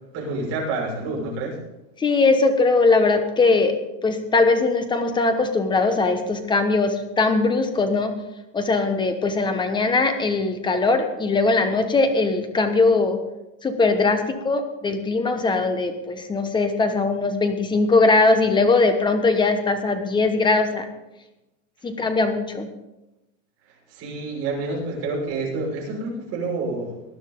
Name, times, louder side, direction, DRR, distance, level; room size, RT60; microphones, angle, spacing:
voice 1, 0.1-1.6 23.9-27.0, right 3 dB, 40° right, -4 dB, 5.8 m, -28 dB
voice 2, 2.0-3.7 4.0-8.1 8.5-13.2 13.6-20.9 21.8-22.7, left 3 dB, 10° left, 8 dB, 1.0 m, -20 dB
19.5 x 11.0 x 3.8 m, 0.98 s
supercardioid pair, 160°, 38 cm